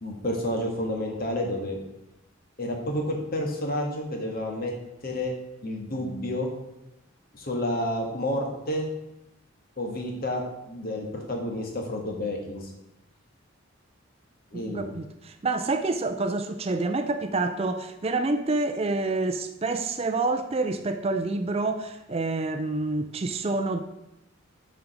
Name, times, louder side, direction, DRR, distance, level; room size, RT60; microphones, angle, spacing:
voice 1, 0.0-1.8 2.6-4.7 5.0-5.3 5.6-6.5 7.3-8.9 9.8-12.7 14.5-14.9, left 1 dB, 45° left, 1.6 m, -30 dB
voice 2, 14.5-23.8, right 3 dB, 30° right, 0.4 m, -28 dB
7.2 x 5.1 x 6.1 m
head